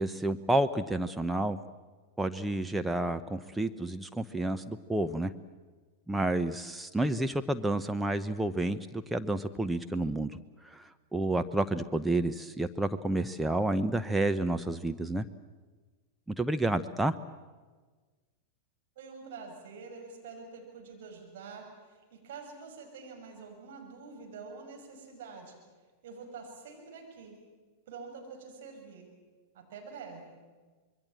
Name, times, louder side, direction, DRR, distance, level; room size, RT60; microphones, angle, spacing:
voice 1, 0.0-1.6 2.2-5.3 6.1-15.2 16.3-17.1, right 2 dB, 5° right, 8 dB, 0.8 m, -30 dB
voice 2, 18.9-25.6 26.0-27.4 27.9-29.1 29.5-30.4, right 4 dB, 60° right, 2 dB, 6.4 m, -46 dB
25.5 x 22.0 x 7.7 m, 1.4 s
figure-of-eight pair, 95°, 0 cm